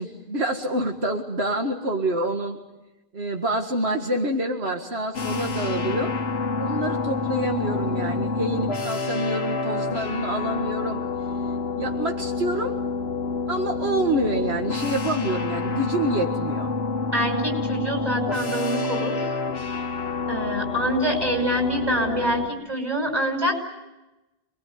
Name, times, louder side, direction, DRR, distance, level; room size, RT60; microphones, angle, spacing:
voice 1, 0.0-2.6 3.1-6.1 6.6-11.0 11.8-12.7 13.5-16.7, right 1 dB, 80° right, 3 dB, 2.2 m, -27 dB
sound 1, 5.1-22.5, left 4 dB, 75° left, 1.5 m, -28 dB
voice 2, 17.1-19.3 20.3-23.6, right 1 dB, 25° right, 3 dB, 5.9 m, -26 dB
28.0 x 21.5 x 9.5 m, 1.0 s
omnidirectional pair, 1.1 m